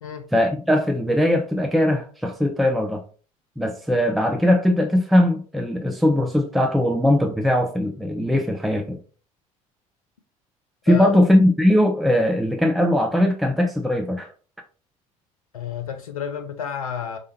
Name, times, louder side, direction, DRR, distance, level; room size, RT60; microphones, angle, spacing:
voice 1, 0.3-3.0 3.6-9.0 10.9-14.3, left 1 dB, ahead, 0.7 m, -20 dB
voice 2, 10.9-11.2 15.5-17.2, left 7 dB, 85° left, 0.5 m, -30 dB
4.8 x 2.8 x 2.8 m
hypercardioid pair, 60°, 18 cm